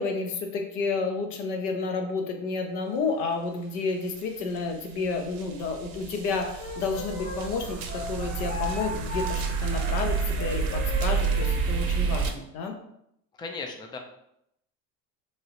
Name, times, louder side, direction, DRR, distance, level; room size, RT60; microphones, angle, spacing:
voice 1, 0.0-12.8, left 4 dB, 80° left, 4 dB, 0.7 m, -30 dB
sound 1, 4.1-4.2 4.6-12.3, right 5 dB, 55° right, 0.6 m, -29 dB
Wind instrument woodwind instrument, 6.6-11.6, left 2 dB, 40° left, 0.9 m, -37 dB
voice 2, 13.4-14.0, left 4 dB, 10° left, 3 dB, 0.3 m, -36 dB
3.1 x 2.7 x 2.9 m, 0.76 s
hypercardioid pair, 85°, 45 cm